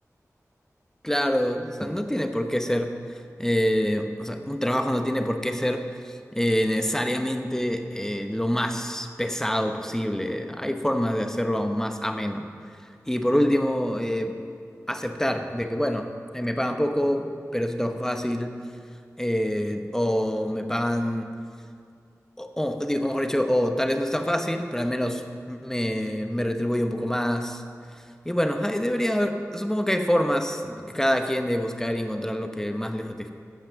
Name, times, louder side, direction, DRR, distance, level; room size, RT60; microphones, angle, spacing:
voice 1, 1.0-12.5 13.1-14.4 14.9-18.6 19.2-21.3 22.4-27.6 28.2-33.3, equal, 10° left, 6 dB, 1.0 m, -26 dB
15.0 x 5.8 x 7.0 m, 2.3 s
wide cardioid pair, 50°, 6 cm